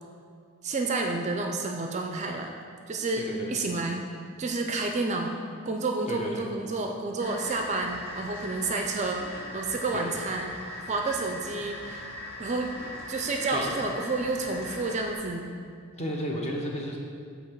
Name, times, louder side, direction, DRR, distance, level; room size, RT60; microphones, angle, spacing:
voice 1, 0.6-2.5 2.9-4.0 4.4-5.3 5.7-10.6 10.9-12.0 12.4-12.7 13.1-15.6, right 3 dB, 30° right, 3 dB, 0.4 m, -30 dB
voice 2, 3.2-3.7 6.1-6.5 9.9-10.1 13.5-13.7 16.0-17.0, equal, 30° left, -1 dB, 0.8 m, -33 dB
sound 1, 7.2-15.2, left 1 dB, 60° left, 1.1 m, -40 dB
8.2 x 2.9 x 5.7 m, 2.2 s
head